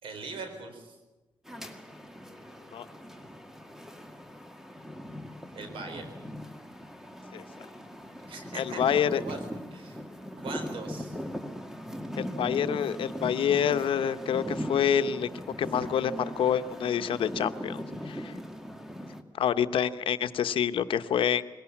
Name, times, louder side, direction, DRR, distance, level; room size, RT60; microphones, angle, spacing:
voice 1, 0.0-1.0 5.5-6.1 8.2-9.4 9.7-10.0 10.4-11.2, right 3 dB, 85° right, 6 dB, 4.1 m, -41 dB
sound 1, 1.5-19.2, equal, 5° right, 2.1 m, -39 dB
voice 2, 8.5-9.2 12.2-15.3 15.6-16.1 16.4-18.3 19.4-21.4, left 9 dB, 90° left, 11 dB, 0.9 m, -27 dB
21.5 x 17.5 x 8.6 m, 1.1 s
cardioid pair, 80°, 9 cm